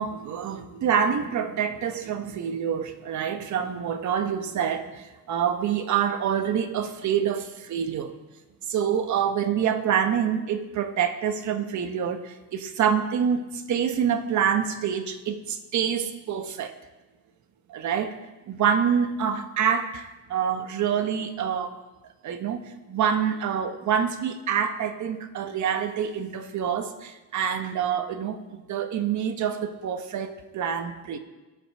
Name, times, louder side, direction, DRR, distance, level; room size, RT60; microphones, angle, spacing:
voice 1, 0.0-8.1 8.7-16.7 17.7-18.2 18.5-21.8 22.2-31.2, right 8 dB, 60° right, 8 dB, 1.4 m, -26 dB
21.5 x 7.4 x 4.4 m, 1.1 s
cardioid pair, 100°, 33 cm